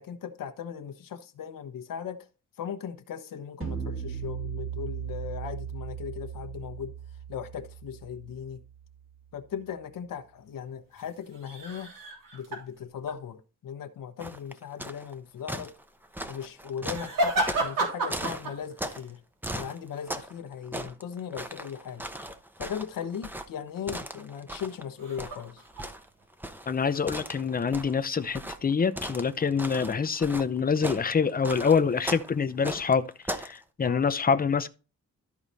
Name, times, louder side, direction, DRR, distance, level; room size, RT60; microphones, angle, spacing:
voice 1, 0.0-2.2 2.6-6.9 7.3-8.6 9.3-11.9 12.3-15.7 16.3-19.2 19.5-22.0 22.6-25.6 33.8-34.0, left 8 dB, 80° left, 1.1 m, -38 dB
sound 1, 3.6-8.9, right 8 dB, 40° right, 2.3 m, -37 dB
sound 2, 10.9-13.2 16.8-19.1 19.5-19.7 25.0-26.3 26.6-27.7 28.3-28.7, right 1 dB, 90° right, 3.2 m, -32 dB
sound 3, 14.2-15.1 15.5-19.1 19.4-20.4 20.6-24.8 25.2-33.6, right 1 dB, 5° right, 0.8 m, -37 dB
voice 2, 26.7-34.7, left 6 dB, 25° left, 0.7 m, -26 dB
13.0 x 4.8 x 4.1 m
cardioid pair, 115°, 33 cm